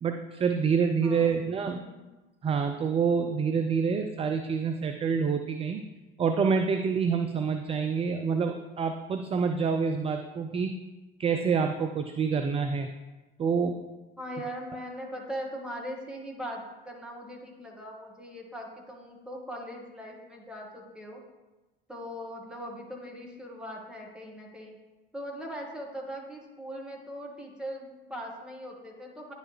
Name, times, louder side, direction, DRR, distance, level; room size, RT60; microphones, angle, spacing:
voice 1, 0.0-1.8 2.4-5.8 6.2-10.8 11.2-12.9 13.4-13.8, right 5 dB, 20° right, 6 dB, 0.3 m, -27 dB
voice 2, 1.0-2.1 14.2-21.2 21.9-24.8 25.1-29.3, equal, 5° right, -1 dB, 1.5 m, -40 dB
9.8 x 4.0 x 3.0 m, 1.1 s
figure-of-eight pair, 60°, 30 cm